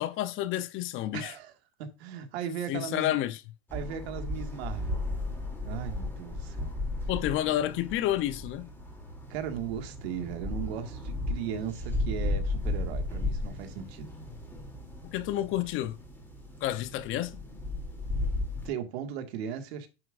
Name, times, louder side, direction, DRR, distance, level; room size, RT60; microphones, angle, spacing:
voice 1, 0.0-1.3 2.7-3.4 7.1-8.7 15.0-16.0 16.6-17.4, left 13 dB, 40° left, 0.8 m, -30 dB
voice 2, 1.1-1.5 1.8-3.2 3.7-5.1 5.6-6.7 9.3-14.1 18.6-19.9, right 8 dB, 70° right, 2.0 m, -37 dB
sound 1, 3.7-18.7, left 2 dB, 5° left, 2.9 m, -35 dB
10.0 x 7.6 x 2.5 m
supercardioid pair, 140°, 33 cm